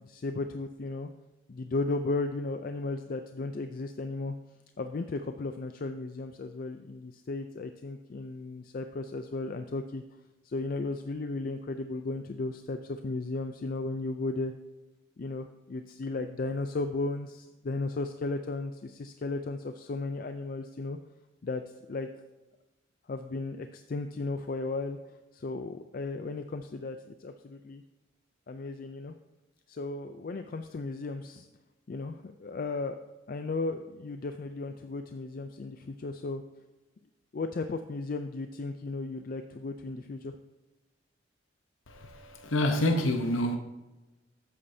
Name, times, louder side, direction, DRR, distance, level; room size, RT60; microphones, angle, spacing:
voice 1, 0.1-1.1 1.5-4.4 4.8-10.0 10.4-14.5 15.2-21.0 21.4-21.6 21.9-22.1 23.1-27.8 28.5-29.1 29.7-31.5 31.9-33.0 33.3-36.4 37.3-40.4, left 3 dB, 45° left, 0.4 m, -35 dB
voice 2, 41.9-43.6, left 1 dB, 80° left, 0.9 m, -27 dB
12.5 x 8.5 x 2.7 m
head